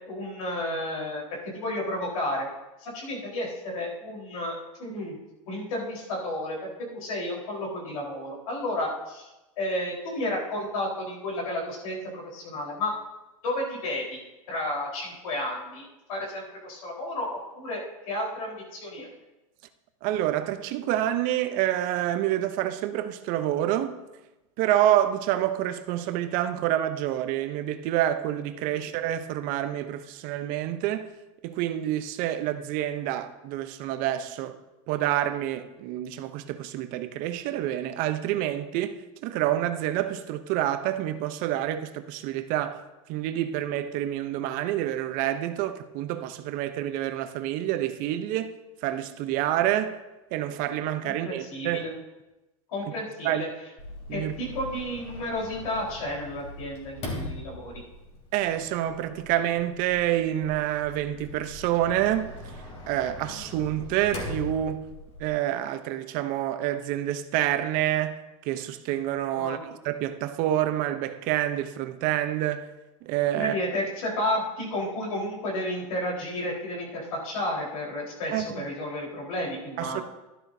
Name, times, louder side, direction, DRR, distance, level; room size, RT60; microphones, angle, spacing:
voice 1, 0.1-1.2 1.5-2.5 2.8-5.2 5.5-9.3 9.6-12.9 13.4-14.2 14.5-19.1 28.7-28.9 51.0-51.9 52.7-53.5 54.1-57.8 69.3-69.6 73.3-80.0, left 1 dB, 80° left, 4.3 m, -32 dB
voice 2, 20.0-23.9 24.6-31.1 31.4-34.6 34.9-42.8 43.1-48.6 48.8-50.0 50.3-51.8 53.2-53.4 54.1-54.3 58.3-62.3 62.9-64.9 65.2-68.2 68.5-72.7 73.1-73.6 78.3-78.6 79.8-80.0, right 12 dB, 50° right, 0.8 m, -28 dB
Sliding door, 53.8-65.3, left 1 dB, 35° left, 3.2 m, -41 dB
12.0 x 12.0 x 2.7 m
hypercardioid pair, 110°, 18 cm